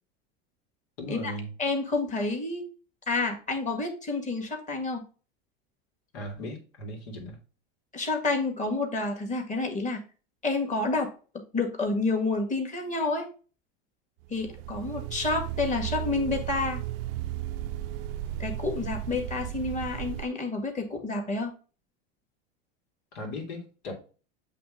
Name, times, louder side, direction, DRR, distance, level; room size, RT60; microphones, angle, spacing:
voice 1, 1.0-1.5 6.1-7.4 23.1-24.0, left 1 dB, 85° left, 2.5 m, -37 dB
voice 2, 1.6-2.7 3.1-5.0 7.9-10.0 10.4-11.1 11.3-13.3 14.3-16.8 18.4-21.5, left 3 dB, 25° left, 1.9 m, -29 dB
sound 1, 14.2-20.3, right 13 dB, 70° right, 0.4 m, -35 dB
7.8 x 3.4 x 3.7 m
supercardioid pair, 125°, 30 cm